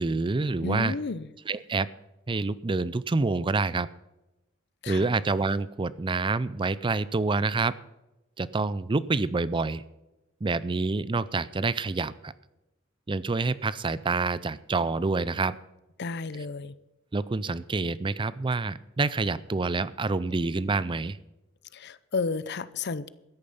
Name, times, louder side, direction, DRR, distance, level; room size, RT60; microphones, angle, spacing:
voice 1, 0.0-0.9 1.5-1.9 2.3-3.9 4.9-7.8 8.4-9.8 10.4-12.3 13.1-15.6 17.1-21.2, right 3 dB, 25° right, 0.4 m, -27 dB
voice 2, 0.6-1.3 4.8-5.1 16.0-16.8 21.7-23.1, left 4 dB, 55° left, 0.7 m, -32 dB
13.5 x 10.5 x 5.6 m
head